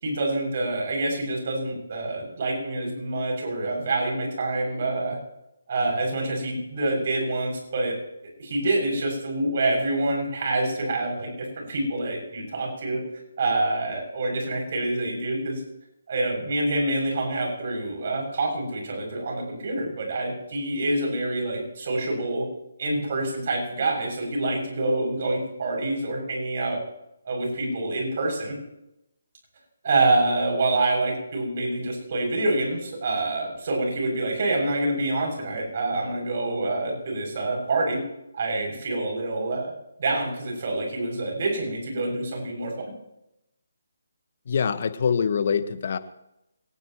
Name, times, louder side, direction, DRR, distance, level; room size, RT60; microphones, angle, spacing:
voice 1, 0.0-5.2 5.7-8.0 8.4-11.3 11.6-13.0 13.4-15.6 16.1-22.5 22.8-26.8 27.3-28.6 29.8-38.0 38.3-39.7 40.0-42.9, right 2 dB, 45° right, 1 dB, 7.1 m, -26 dB
voice 2, 44.5-46.0, left 6 dB, 50° left, 12 dB, 1.3 m, -24 dB
23.5 x 19.0 x 3.1 m, 0.86 s
figure-of-eight pair, 145°, 0 cm